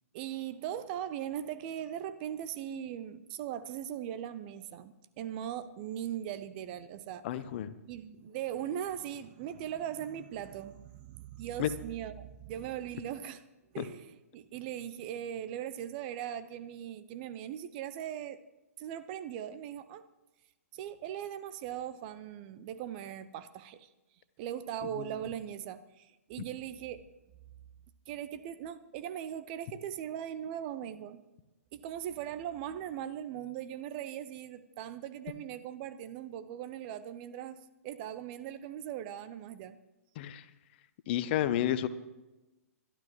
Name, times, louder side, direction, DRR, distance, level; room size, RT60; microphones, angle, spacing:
voice 1, 0.1-7.2 7.9-13.4 13.7-18.4 18.8-20.0 20.7-23.9 24.4-27.0 28.1-31.2 31.7-39.8, right 10 dB, 35° right, 12 dB, 0.7 m, -39 dB
voice 2, 7.2-7.7 11.6-11.7 13.8-13.9 25.0-25.1 40.2-40.4 41.1-41.9, left 12 dB, 40° left, 12 dB, 0.8 m, -31 dB
22.5 x 12.0 x 3.1 m, 1.0 s
figure-of-eight pair, 120°, 8 cm